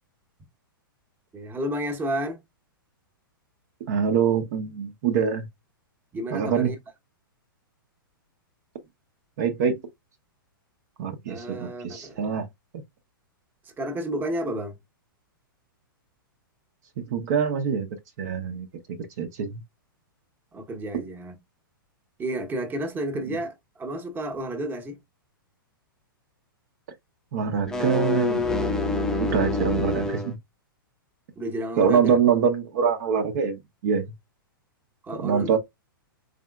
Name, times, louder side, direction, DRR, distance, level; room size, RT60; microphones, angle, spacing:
voice 1, 1.3-2.4 6.1-6.8 11.3-12.2 13.6-14.8 20.5-21.4 22.2-25.0 31.4-32.2 35.0-35.6, right 1 dB, 15° right, 0.9 m, -31 dB
voice 2, 3.9-5.5 6.3-6.7 9.4-9.8 11.0-12.5 17.0-17.9 18.2-19.6 20.9-21.0 23.3-23.4 27.3-28.4 29.2-30.4 31.8-34.1 35.2-35.6, right 7 dB, 50° right, 0.7 m, -24 dB
sound 1, 27.5-30.3, left 3 dB, 5° left, 0.5 m, -26 dB
3.7 x 3.5 x 2.3 m
figure-of-eight pair, 110°, 12 cm